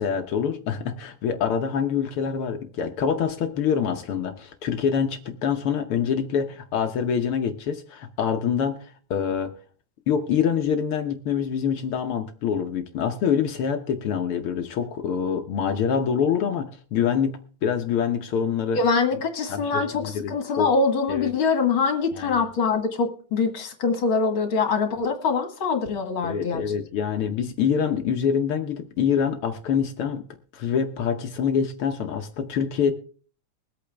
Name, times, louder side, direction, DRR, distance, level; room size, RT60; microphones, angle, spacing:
voice 1, 0.0-9.5 10.1-18.8 19.5-20.7 21.1-21.3 22.1-22.4 26.2-30.2 30.5-32.9, left 7 dB, 65° left, 7 dB, 1.4 m, -25 dB
voice 2, 18.7-26.6, left 4 dB, 50° left, 5 dB, 2.3 m, -24 dB
22.0 x 8.4 x 3.4 m, 0.41 s
omnidirectional pair, 3.3 m